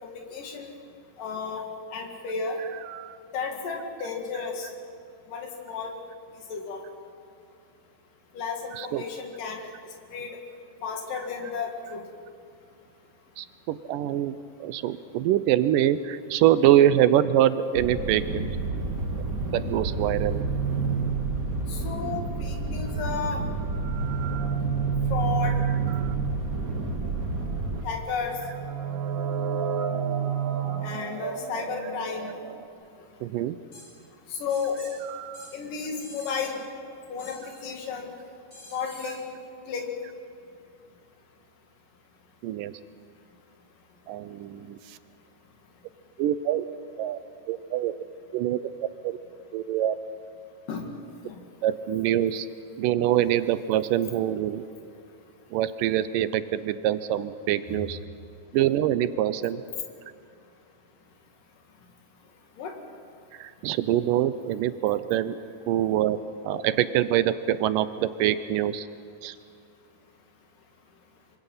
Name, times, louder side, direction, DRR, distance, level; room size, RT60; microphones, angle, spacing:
voice 1, 0.0-0.7 1.2-1.7 1.9-2.6 3.3-4.7 5.3-5.9 6.5-6.8 8.3-9.7 10.1-10.4 10.8-12.0 21.7-23.4 25.1-25.6 27.8-28.4 30.8-32.3 34.3-34.8 35.5-36.6 37.1-38.1 38.7-39.3 39.7-40.0 50.7-50.9 51.2-51.4 62.6-62.8, left 5 dB, 80° left, 2 dB, 3.8 m, -33 dB
voice 2, 8.7-9.0 13.4-14.4 14.6-18.5 19.5-20.4 25.9-26.2 33.2-33.6 35.1-35.5 42.4-42.7 44.1-45.0 46.2-46.6 47.0-47.2 47.5-47.9 48.3-49.2 49.5-50.0 51.6-52.5 52.8-54.6 55.5-58.0 58.5-59.6 63.3-65.4 65.7-68.9 69.2-69.4, right 12 dB, 85° right, 13 dB, 2.4 m, -25 dB
sound 1, 17.7-27.8, right 2 dB, 30° right, 2.0 m, -30 dB
sound 2, 18.7-22.0 22.4-32.6, right 8 dB, 55° right, 1.9 m, -31 dB
sound 3, 33.7-33.8 34.5-34.9 35.3-35.5 36.0-36.5 37.2-37.6 38.5-39.2, left 1 dB, 20° left, 8.2 m, -46 dB
26.0 x 25.5 x 5.7 m, 2.4 s
omnidirectional pair, 3.8 m